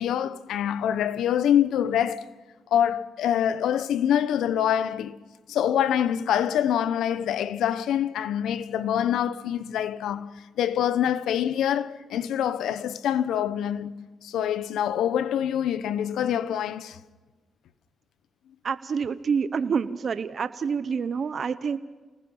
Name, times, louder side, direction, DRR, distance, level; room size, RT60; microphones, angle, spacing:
voice 1, 0.0-2.3 2.7-5.2 5.5-17.0, left 10 dB, 90° left, 0.9 m, -25 dB
voice 2, 18.6-21.8, right 6 dB, 60° right, 1.0 m, -27 dB
29.5 x 19.5 x 5.6 m
cardioid pair, 70°, 0 cm